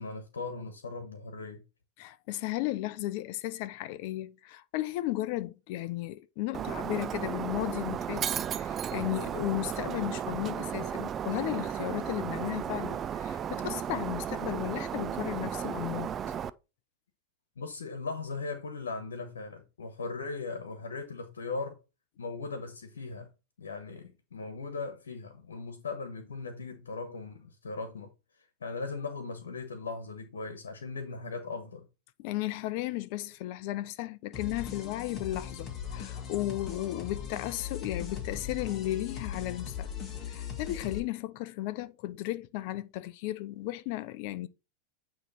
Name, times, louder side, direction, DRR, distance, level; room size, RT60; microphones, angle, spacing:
voice 1, 0.0-1.6 17.6-21.8 22.2-23.3 23.6-28.1 28.6-31.9, left 3 dB, 90° left, 1.3 m, -38 dB
voice 2, 2.0-16.1 32.2-39.9 40.3-44.5, left 16 dB, 60° left, 0.6 m, -35 dB
Shatter, 6.5-16.5, right 8 dB, 30° right, 0.4 m, -34 dB
sound 1, 34.3-41.0, left 8 dB, 35° left, 2.0 m, -39 dB
8.9 x 3.2 x 4.3 m
hypercardioid pair, 105°, 0 cm